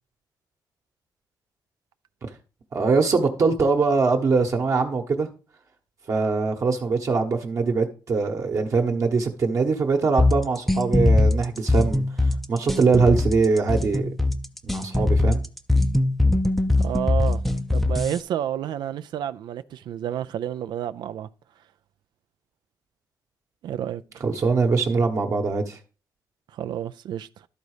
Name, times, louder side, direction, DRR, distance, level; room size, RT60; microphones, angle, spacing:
voice 1, 2.7-5.3 6.1-12.0 12.5-14.1 14.6-15.4 24.2-25.8, right 4 dB, 45° right, 1.2 m, -22 dB
sound 1, 10.2-18.2, left 2 dB, ahead, 0.5 m, -21 dB
voice 2, 16.8-17.4 17.7-21.3 23.6-24.2 26.5-27.5, right 10 dB, 75° right, 0.5 m, -30 dB
12.0 x 4.1 x 4.9 m
cardioid pair, 135°, 8 cm